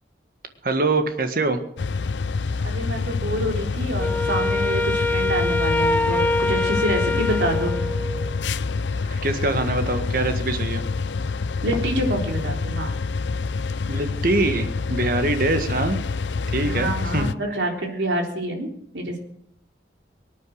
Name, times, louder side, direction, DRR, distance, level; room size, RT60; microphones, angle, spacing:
voice 1, 0.6-1.6 9.0-10.8 13.9-16.0 16.5-17.3, right 2 dB, 50° right, 7 dB, 1.7 m, -24 dB
sound 1, 1.8-17.3, left 4 dB, 80° left, 0.6 m, -27 dB
voice 2, 2.6-7.8 11.6-12.9 16.6-18.7 18.9-19.2, right 1 dB, 85° right, 1 dB, 3.7 m, -27 dB
Wind instrument woodwind instrument, 4.0-8.4, left 2 dB, 10° left, 0.6 m, -24 dB
24.0 x 9.4 x 6.5 m, 0.69 s
head